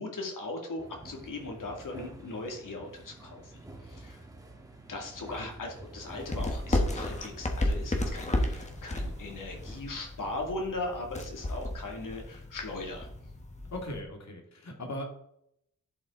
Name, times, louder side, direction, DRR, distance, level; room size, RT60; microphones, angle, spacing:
voice 1, 0.0-4.2 4.9-13.1, left 2 dB, 85° left, 1 dB, 2.3 m, -39 dB
sound 1, 0.8-9.8, right 2 dB, 10° right, 1.3 m, -48 dB
sound 2, 6.2-14.0, left 1 dB, 20° left, 1.2 m, -33 dB
voice 2, 13.7-15.0, left 1 dB, 60° left, 2 dB, 2.1 m, -39 dB
11.0 x 5.8 x 3.7 m, 0.70 s
wide cardioid pair, 160°, 31 cm